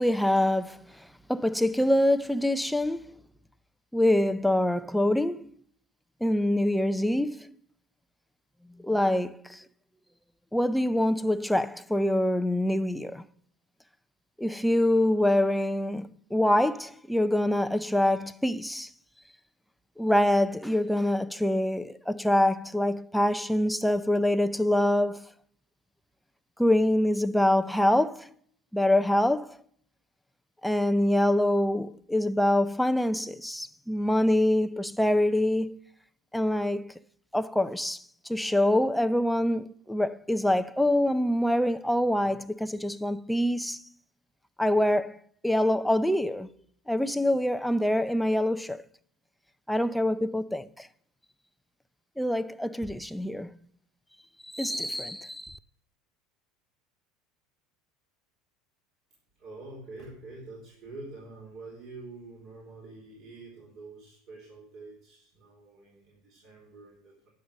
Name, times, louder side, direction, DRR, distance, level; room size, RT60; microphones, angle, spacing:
voice 1, 0.0-3.1 3.9-5.5 6.2-7.5 8.8-9.6 10.5-13.2 14.4-18.9 20.0-25.3 26.6-28.3 28.7-29.6 30.6-35.8 36.3-36.9 37.3-43.8 44.6-45.2 45.4-46.5 46.9-48.8 49.7-50.9 52.2-53.6 54.4-55.6, left 1 dB, ahead, 0.5 m, -25 dB
voice 2, 59.4-67.3, right 3 dB, 55° right, 3.8 m, -46 dB
10.5 x 6.7 x 6.4 m
supercardioid pair, 95°, 0 cm